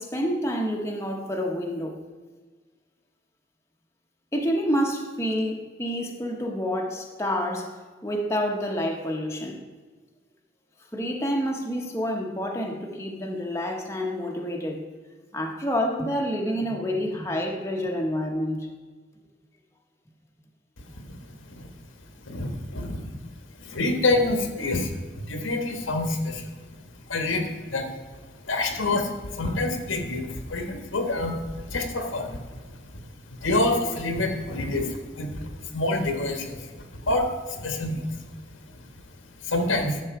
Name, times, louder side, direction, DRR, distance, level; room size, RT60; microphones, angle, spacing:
voice 1, 0.0-2.0 4.3-7.7 8.0-9.6 10.9-14.8 15.3-18.7, equal, 15° left, 0 dB, 1.0 m, -28 dB
voice 2, 22.3-23.0 23.6-26.5 27.1-27.9 28.4-32.6 33.3-38.2 39.4-40.0, left 2 dB, 85° left, 5 dB, 1.4 m, -27 dB
11.0 x 7.0 x 4.7 m, 1.4 s
head